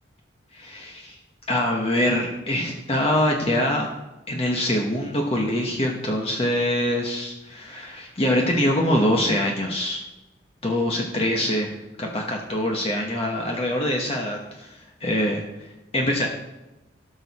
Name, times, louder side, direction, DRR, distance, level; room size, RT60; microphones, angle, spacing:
voice 1, 0.5-1.1 1.5-3.9 4.3-10.0 10.6-11.7 12.0-15.4 15.9-16.3, left 1 dB, 30° left, 0 dB, 1.2 m, -24 dB
17.5 x 6.4 x 4.2 m, 1.0 s
head